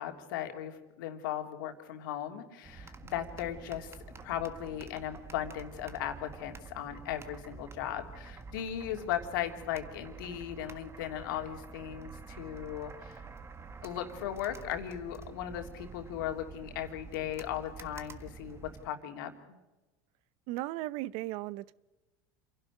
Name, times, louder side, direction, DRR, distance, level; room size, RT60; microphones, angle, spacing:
voice 1, 0.0-13.2 13.8-19.6, left 10 dB, 80° left, 5 dB, 3.1 m, -37 dB
sound 1, 2.6-18.9, right 4 dB, 25° right, 1.6 m, -48 dB
voice 2, 20.5-21.7, right 17 dB, 65° right, 20 dB, 0.8 m, -36 dB
27.5 x 11.5 x 9.9 m, 1.1 s
supercardioid pair, 100°, 11 cm